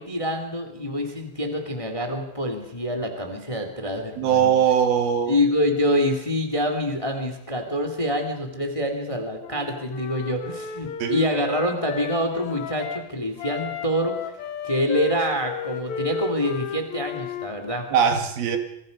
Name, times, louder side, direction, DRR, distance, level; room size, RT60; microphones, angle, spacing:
voice 1, 0.0-4.5 5.3-14.2 14.6-17.9, equal, 10° left, 5 dB, 2.1 m, -26 dB
voice 2, 4.2-5.4 11.0-11.1 17.9-18.6, right 8 dB, 85° right, 6 dB, 3.8 m, -20 dB
Wind instrument woodwind instrument, 9.4-13.0 13.4-17.5, left 6 dB, 60° left, 2.2 m, -33 dB
27.0 x 22.5 x 5.4 m, 0.80 s
omnidirectional pair, 4.2 m